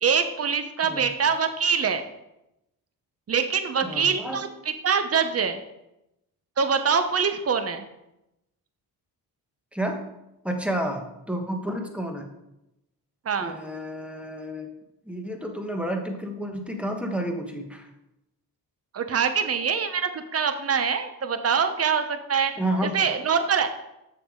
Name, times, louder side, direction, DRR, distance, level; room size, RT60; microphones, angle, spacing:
voice 1, 0.0-2.0 3.3-4.5 4.8-5.6 6.6-7.8 13.2-13.6 18.9-22.5 22.8-23.7, right 6 dB, 35° right, 9 dB, 0.9 m, -24 dB
voice 2, 3.8-4.5 9.7-10.0 10.4-12.3 13.4-14.7 15.0-17.9 22.6-22.9, right 1 dB, 5° right, 3 dB, 1.3 m, -30 dB
6.9 x 6.8 x 3.8 m, 0.89 s
cardioid pair, 75°, 40 cm